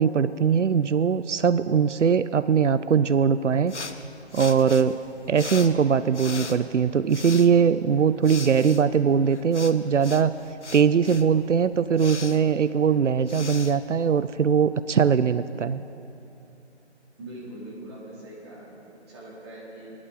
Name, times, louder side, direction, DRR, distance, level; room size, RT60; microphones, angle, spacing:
voice 1, 0.0-3.7 4.3-5.0 5.3-10.3 10.7-15.8, right 7 dB, 90° right, 14 dB, 0.5 m, -21 dB
sound 1, 3.7-14.6, left 4 dB, 75° left, 0.9 m, -40 dB
voice 2, 17.2-18.7 19.1-19.9, right 1 dB, 20° right, -7 dB, 3.0 m, -41 dB
21.0 x 11.5 x 3.9 m, 2.8 s
figure-of-eight pair, 155°, 35 cm